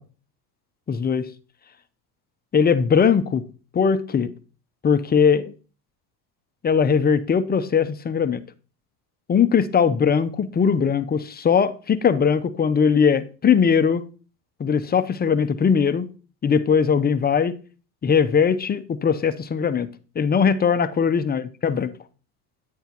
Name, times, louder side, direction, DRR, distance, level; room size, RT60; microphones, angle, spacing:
voice 1, 0.9-1.3 2.5-3.4 3.7-4.3 4.8-5.5 6.6-8.4 9.3-14.0 14.6-16.1 16.4-17.5 18.0-19.9 20.2-21.9, left 6 dB, 20° left, 0.6 m, -20 dB
10.5 x 9.4 x 2.9 m
supercardioid pair, 115°, 44 cm